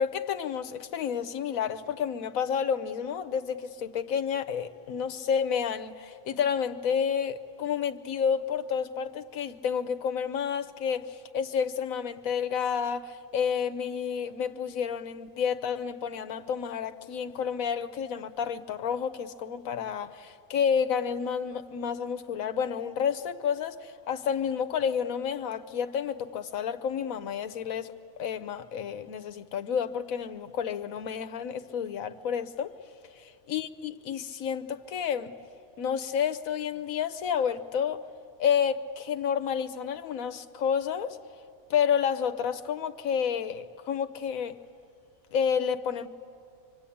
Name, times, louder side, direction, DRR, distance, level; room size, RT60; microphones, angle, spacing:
voice 1, 0.0-27.9 28.2-32.7 33.2-35.3 35.8-38.0 38.4-41.2 41.7-44.6 45.3-46.1, left 7 dB, 85° left, 1.3 m, -30 dB
25.5 x 24.5 x 8.6 m
omnidirectional pair, 1.4 m